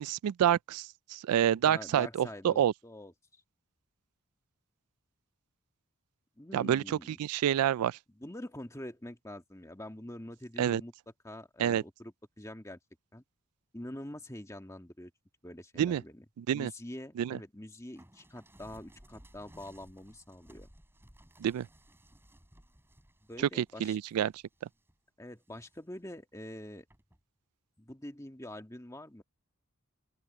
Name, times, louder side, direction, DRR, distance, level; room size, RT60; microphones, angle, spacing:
voice 1, 0.0-2.7 6.5-8.0 10.6-10.8 11.6-11.8 15.8-16.0 16.4-16.7 17.2-17.4 21.4-21.7 23.4-24.4, right 10 dB, 85° right, 0.3 m, -28 dB
voice 2, 1.7-3.4 6.4-7.2 8.2-10.9 11.2-12.8 13.1-13.2 13.7-15.1 15.4-16.2 16.5-20.7 23.3-24.0 25.2-26.8 27.8-29.2, left 1 dB, 15° left, 1.7 m, -45 dB
sound 1, 18.0-24.9 25.4-26.0 26.9-27.2, equal, 10° right, 4.3 m, -59 dB
open air
head